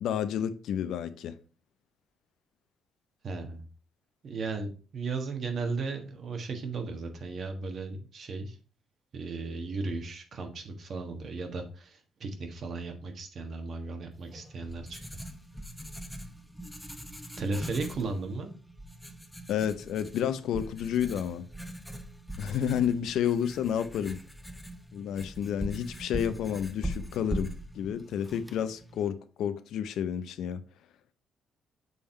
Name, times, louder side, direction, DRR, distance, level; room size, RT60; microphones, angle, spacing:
voice 1, 0.0-1.3 19.5-21.4 22.4-24.2 24.9-30.6, left 9 dB, 80° left, 0.6 m, -30 dB
voice 2, 3.2-3.6 4.2-8.6 9.1-15.2 17.4-18.5, right 3 dB, 55° right, 1.5 m, -36 dB
Writing, 14.3-29.1, equal, 5° left, 0.9 m, -41 dB
6.9 x 3.6 x 4.4 m
cardioid pair, 90°, 0 cm